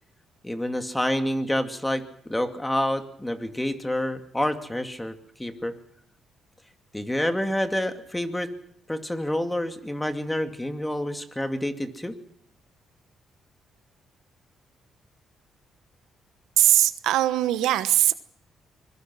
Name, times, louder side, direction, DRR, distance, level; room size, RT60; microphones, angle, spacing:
voice 1, 0.4-5.1 5.4-5.7 6.9-8.5 8.9-12.2, left 1 dB, 10° left, 8 dB, 2.5 m, -28 dB
voice 2, 16.6-18.1, right 13 dB, 90° right, 13 dB, 1.1 m, -20 dB
24.5 x 22.0 x 6.2 m, 0.68 s
cardioid pair, 90°, 0 cm